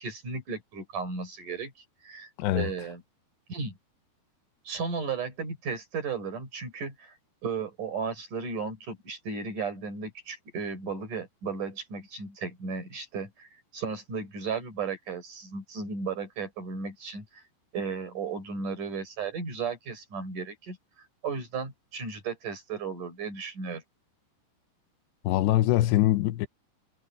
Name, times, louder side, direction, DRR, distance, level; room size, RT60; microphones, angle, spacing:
voice 1, 0.0-1.7 2.0-3.0 3.5-3.7 4.7-7.1 7.4-17.4 17.7-20.8 21.2-23.8, right 5 dB, 50° right, 6.8 m, -35 dB
voice 2, 25.3-26.5, left 15 dB, 85° left, 2.9 m, -23 dB
omnidirectional pair, 4.9 m